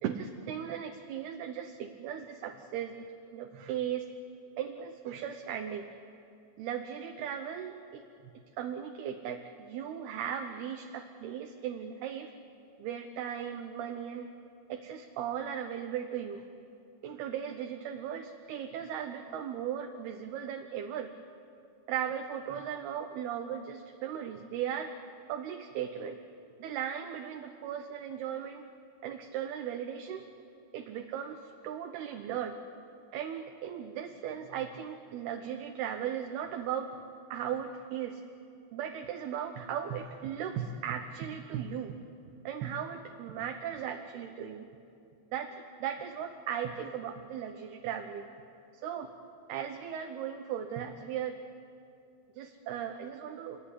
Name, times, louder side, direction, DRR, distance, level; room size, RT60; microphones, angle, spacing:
voice 1, 0.0-4.1 4.6-5.9 6.6-8.0 8.6-12.3 12.8-14.3 14.7-16.4 17.0-21.1 21.9-24.9 25.3-26.2 26.6-28.7 29.0-30.3 30.7-32.6 33.1-36.9 37.3-38.2 38.7-42.0 42.4-44.7 45.3-45.5 45.8-48.3 48.8-49.1 49.5-51.4 52.3-53.6, right 9 dB, 70° right, 4 dB, 2.8 m, -37 dB
27.5 x 22.0 x 9.9 m, 2.6 s
omnidirectional pair, 5.0 m